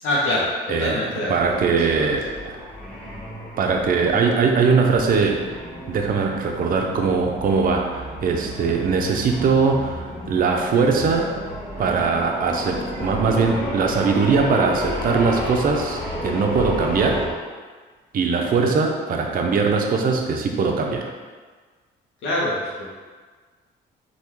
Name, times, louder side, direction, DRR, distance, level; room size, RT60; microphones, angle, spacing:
voice 1, 0.0-0.5 0.8-1.8 18.4-18.8 22.2-22.9, left 1 dB, 80° left, -5 dB, 0.7 m, -25 dB
voice 2, 0.7-1.0 1.3-2.7 3.6-5.4 5.9-11.3 11.8-17.3 18.1-21.1, right 4 dB, 45° right, 2 dB, 0.5 m, -21 dB
sound 1, 1.3-17.3, equal, 5° left, 1.3 m, -32 dB
3.4 x 2.2 x 3.0 m, 1.4 s
cardioid pair, 90°, 20 cm